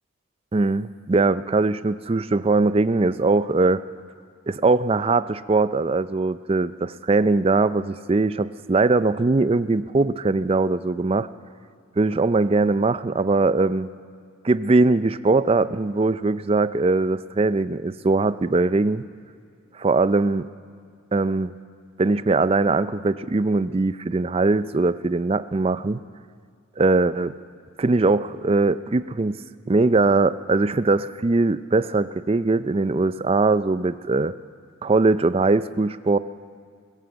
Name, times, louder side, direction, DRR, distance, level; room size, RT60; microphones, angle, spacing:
voice 1, 0.5-3.8 4.5-11.3 12.0-13.9 14.4-19.0 19.7-20.5 21.1-21.5 22.0-26.0 26.8-27.3 27.8-29.4 29.7-34.3 34.8-36.2, right 3 dB, 25° right, 14 dB, 0.4 m, -21 dB
21.5 x 16.5 x 8.0 m, 2.1 s
head